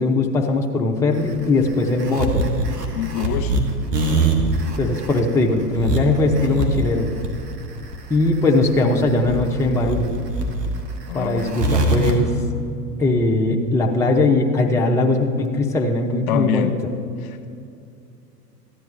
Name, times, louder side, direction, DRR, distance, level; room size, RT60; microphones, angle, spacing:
voice 1, 0.0-2.4 4.8-7.1 8.1-10.1 11.1-12.3 13.0-16.7, left 2 dB, 5° left, 1 dB, 0.6 m, -20 dB
sound 1, 1.1-12.1, right 2 dB, 80° right, 1.5 m, -23 dB
voice 2, 2.9-3.5 11.1-11.6 16.3-16.7 17.2-17.5, left 9 dB, 65° left, 8 dB, 1.0 m, -25 dB
14.5 x 10.5 x 3.3 m, 2.5 s
hypercardioid pair, 100°, 48 cm